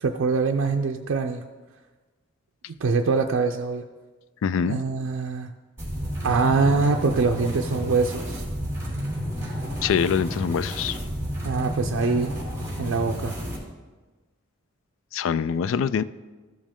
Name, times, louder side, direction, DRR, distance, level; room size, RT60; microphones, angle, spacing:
voice 1, 0.0-1.5 2.8-3.8 4.6-5.5 6.2-8.4 11.4-12.4 12.8-13.3, right 4 dB, 90° right, 3 dB, 0.5 m, -24 dB
voice 2, 4.4-4.8 9.8-11.0 15.1-16.0, left 7 dB, 80° left, 16 dB, 0.3 m, -24 dB
sound 1, 5.8-13.6, equal, 15° right, 2.5 m, -31 dB
13.5 x 5.2 x 3.6 m, 1.3 s
head